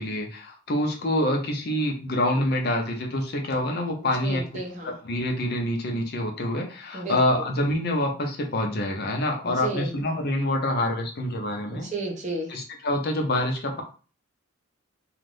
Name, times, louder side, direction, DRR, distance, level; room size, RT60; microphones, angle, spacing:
voice 1, 0.0-4.4 4.8-11.9 12.5-13.8, left 1 dB, 50° left, 1 dB, 0.6 m, -26 dB
voice 2, 4.2-4.9 6.9-7.2 9.6-9.9 11.7-12.5, right 2 dB, 35° right, 1 dB, 0.7 m, -32 dB
2.5 x 2.4 x 3.3 m, 0.37 s
head